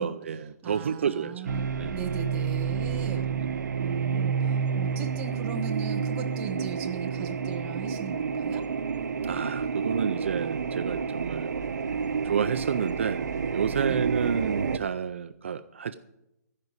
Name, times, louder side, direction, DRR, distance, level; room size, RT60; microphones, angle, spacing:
voice 1, 0.0-1.5 1.8-2.0 3.2-3.5 9.2-11.5 12.2-15.9, right 7 dB, 45° right, 12 dB, 0.4 m, -30 dB
voice 2, 0.6-3.3 3.8-8.7 13.8-14.0, right 6 dB, 10° right, 3 dB, 0.8 m, -38 dB
sound 1, 1.5-14.8, right 6 dB, 80° right, 0.8 m, -29 dB
15.0 x 5.4 x 9.5 m, 0.89 s
hypercardioid pair, 175°, 9 cm